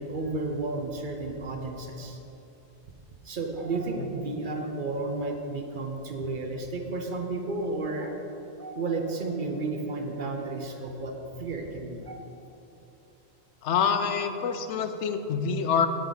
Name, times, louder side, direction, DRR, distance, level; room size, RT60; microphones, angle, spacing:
voice 1, 0.0-2.2 3.2-8.2 8.6-11.1 11.4-12.2, right 3 dB, 50° right, 3 dB, 0.8 m, -32 dB
voice 2, 13.6-15.9, left 6 dB, 85° left, 8 dB, 0.9 m, -26 dB
8.3 x 8.0 x 4.0 m, 2.9 s
omnidirectional pair, 1.2 m